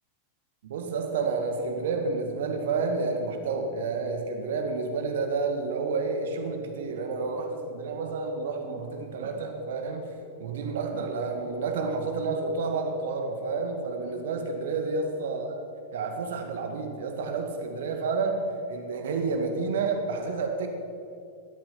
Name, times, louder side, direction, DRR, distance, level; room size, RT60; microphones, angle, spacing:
voice 1, 0.6-10.1 10.4-15.7 15.9-20.7, right 4 dB, 60° right, 4 dB, 2.2 m, -30 dB
18.5 x 13.0 x 6.1 m, 2.7 s
figure-of-eight pair, 90°, 0 cm